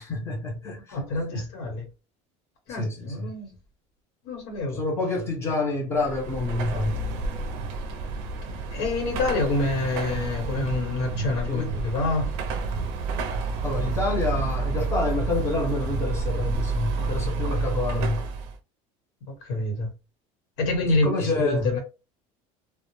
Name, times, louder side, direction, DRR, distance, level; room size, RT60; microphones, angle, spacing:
voice 1, 0.0-1.0 1.3-1.5 2.7-3.3 4.7-7.2 11.5-11.9 13.6-18.2 21.0-21.7, left 2 dB, 15° left, 0.6 m, -28 dB
voice 2, 0.9-1.9 2.7-3.5 4.2-4.8 8.7-12.3 19.4-19.9 20.6-21.8, left 2 dB, 75° left, 1.1 m, -27 dB
Car passing by / Traffic noise roadway noise / Engine, 5.9-18.6, right 3 dB, 70° right, 0.5 m, -30 dB
2.1 x 2.0 x 3.0 m
cardioid pair, 165°, 15 cm